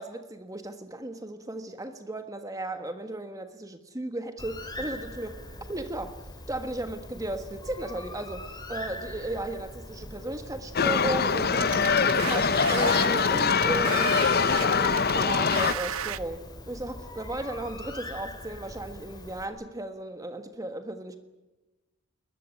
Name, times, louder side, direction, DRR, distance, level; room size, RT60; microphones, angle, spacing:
voice 1, 0.0-5.4 5.7-6.2 6.5-21.2, right 1 dB, 15° right, 8 dB, 1.4 m, -35 dB
Bird, 4.4-19.5, left 1 dB, 20° left, 3.2 m, -42 dB
sound 1, 10.7-15.7, left 5 dB, 45° left, 1.0 m, -23 dB
sound 2, 11.5-16.2, right 9 dB, 85° right, 1.0 m, -35 dB
21.5 x 20.5 x 9.8 m, 1.1 s
head